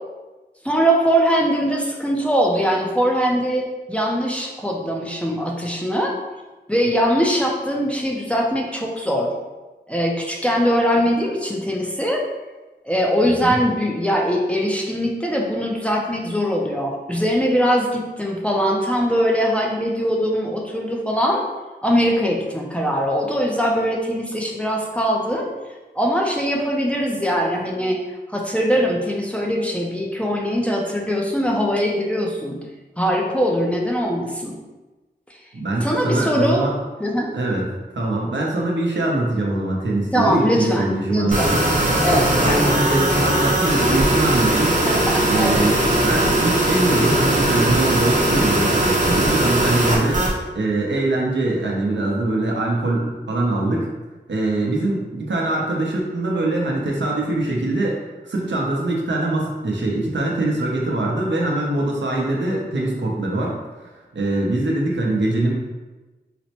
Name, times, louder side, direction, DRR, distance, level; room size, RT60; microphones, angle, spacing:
voice 1, 0.6-6.2 6.7-9.3 9.9-12.2 12.8-21.4 21.8-25.5 26.0-28.0 28.3-32.6 33.0-34.5 35.8-36.6 37.0-37.3 40.1-41.5 42.0-42.3 44.8-46.0, equal, 5° left, -2 dB, 0.5 m, -21 dB
voice 2, 35.5-36.7 37.3-41.6 42.0-44.7 45.3-50.2 50.5-53.9 54.3-58.0 58.2-65.5, right 2 dB, 80° right, -2 dB, 0.7 m, -23 dB
sound 1, 41.3-50.3, right 1 dB, 40° right, 0.7 m, -19 dB
4.1 x 2.1 x 2.8 m, 1.2 s
wide cardioid pair, 80°, 19 cm